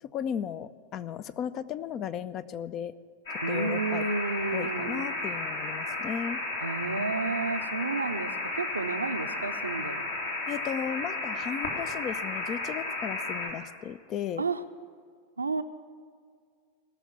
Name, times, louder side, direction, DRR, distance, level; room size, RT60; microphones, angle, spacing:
voice 1, 0.0-2.9 3.5-4.1 4.5-6.4 10.5-14.4, left 8 dB, 35° left, 15 dB, 0.5 m, -35 dB
sound 1, 3.3-13.5, left 2 dB, 65° left, 2.7 m, -33 dB
voice 2, 3.4-5.1 6.6-10.1 14.4-14.6 15.4-15.6, right 4 dB, 75° right, 9 dB, 0.6 m, -31 dB
17.5 x 6.6 x 9.3 m, 2.1 s
figure-of-eight pair, 90°, 0 cm